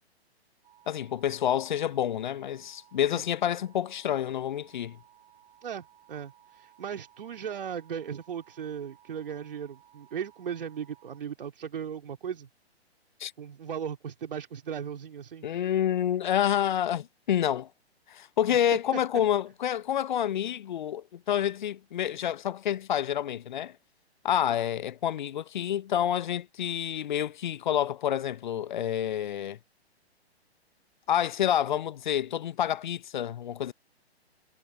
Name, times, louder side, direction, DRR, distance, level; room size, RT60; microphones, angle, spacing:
sound 1, 0.6-11.2, right 11 dB, 15° right, 3.0 m, -59 dB
voice 1, 0.9-5.0 13.2-13.3 15.4-17.7 18.1-23.7 24.2-29.6 31.1-33.7, left 10 dB, 45° left, 0.7 m, -28 dB
voice 2, 5.6-12.5 13.4-15.5 18.9-19.0, right 8 dB, 55° right, 3.4 m, -37 dB
figure-of-eight pair, 125°, 33 cm